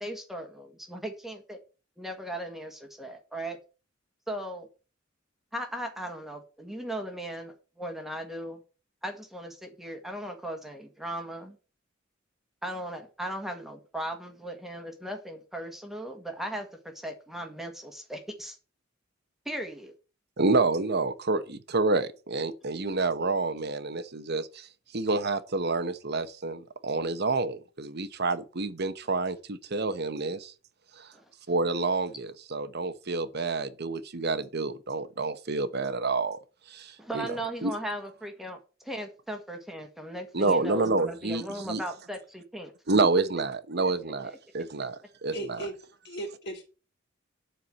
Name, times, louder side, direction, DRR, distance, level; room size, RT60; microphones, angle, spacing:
voice 1, 0.0-1.6 2.0-3.6 4.3-4.7 5.5-8.6 9.0-11.6 12.6-18.6 19.5-19.9 31.1-31.3 37.0-38.6 38.8-42.7 43.8-44.4, right 1 dB, ahead, 1.9 m, -37 dB
voice 2, 20.4-24.7 24.9-30.5 31.0-31.1 31.5-36.4 36.7-37.3 37.6-37.7 40.3-41.4 41.7-41.8 42.9-45.6, right 3 dB, 55° right, 1.1 m, -28 dB
voice 3, 45.3-45.7 46.0-46.6, right 2 dB, 60° left, 3.9 m, -36 dB
11.5 x 4.7 x 7.8 m
head